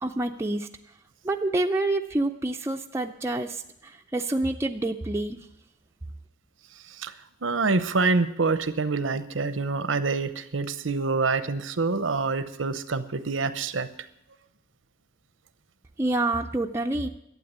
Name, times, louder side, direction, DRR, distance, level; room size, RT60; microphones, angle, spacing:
voice 1, 0.0-0.7 1.2-5.4 16.0-17.1, right 2 dB, 15° right, 3 dB, 0.4 m, -27 dB
voice 2, 7.4-13.9, right 4 dB, 85° right, 13 dB, 0.8 m, -26 dB
12.0 x 8.6 x 8.1 m, 0.79 s
head